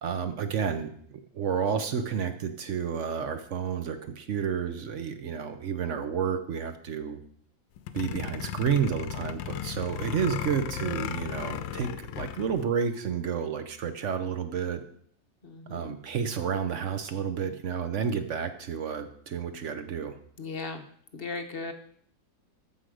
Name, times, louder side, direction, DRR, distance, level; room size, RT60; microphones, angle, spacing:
voice 1, 0.0-7.2 7.9-14.8 15.7-20.2, right 7 dB, 60° right, 9 dB, 0.7 m, -31 dB
sound 1, 7.8-12.6, left 10 dB, 90° left, 1.4 m, -35 dB
voice 2, 15.4-15.9 20.4-20.8 21.1-21.7, left 4 dB, 45° left, 6 dB, 0.7 m, -37 dB
14.0 x 5.7 x 4.9 m, 0.62 s
omnidirectional pair, 2.0 m